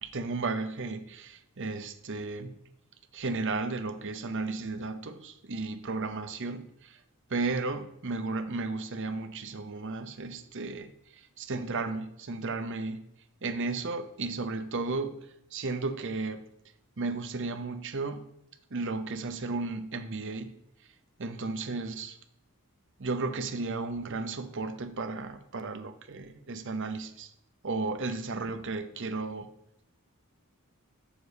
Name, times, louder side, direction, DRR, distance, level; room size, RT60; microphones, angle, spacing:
voice 1, 0.0-2.6 3.1-7.0 7.3-13.0 13.4-15.2 15.5-16.4 17.0-18.2 18.7-20.5 21.2-22.2 23.0-27.3 27.6-29.5, right 3 dB, 55° right, 9 dB, 0.7 m, -34 dB
7.0 x 6.8 x 4.0 m, 0.77 s
head